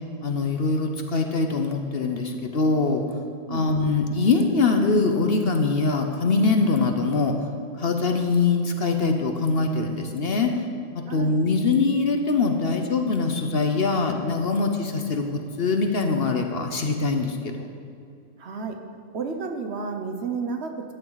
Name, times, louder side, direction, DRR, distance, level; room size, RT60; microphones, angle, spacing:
voice 1, 0.2-3.0 3.5-7.3 7.8-10.5 11.1-17.7, left 3 dB, 50° left, 5 dB, 1.0 m, -23 dB
voice 2, 3.5-3.8 11.1-11.3 18.4-18.8 19.1-20.7, right 5 dB, 55° right, 4 dB, 1.1 m, -31 dB
14.0 x 10.5 x 4.0 m, 2.4 s
omnidirectional pair, 1.4 m